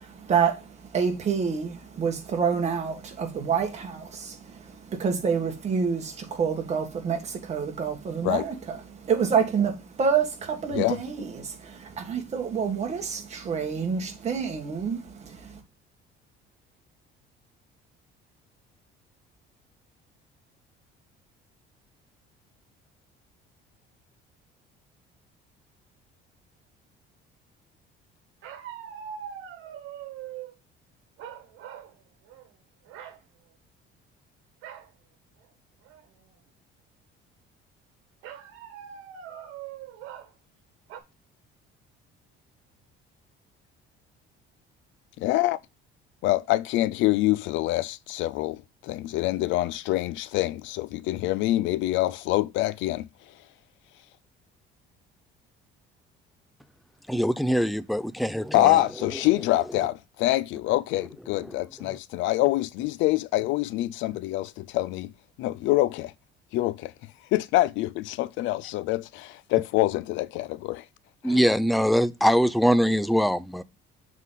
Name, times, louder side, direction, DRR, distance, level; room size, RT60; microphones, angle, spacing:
voice 1, 0.0-15.6, right 6 dB, 35° right, 1.8 m, -28 dB
sound 1, 28.4-30.5 31.2-31.9 32.2-32.5 32.9-33.2 34.6-34.9 35.4-35.5 35.8-36.3 38.2-40.3 40.9-41.0, right 9 dB, 80° right, 1.4 m, -41 dB
voice 2, 45.2-45.6 46.2-53.1 58.5-65.1 65.4-66.1 66.5-66.9 67.3-70.8 71.2-71.4, left 16 dB, 75° left, 0.4 m, -25 dB
voice 3, 57.1-58.8 71.2-73.6, equal, ahead, 0.3 m, -22 dB
7.2 x 3.8 x 4.0 m
cardioid pair, 135°, 20 cm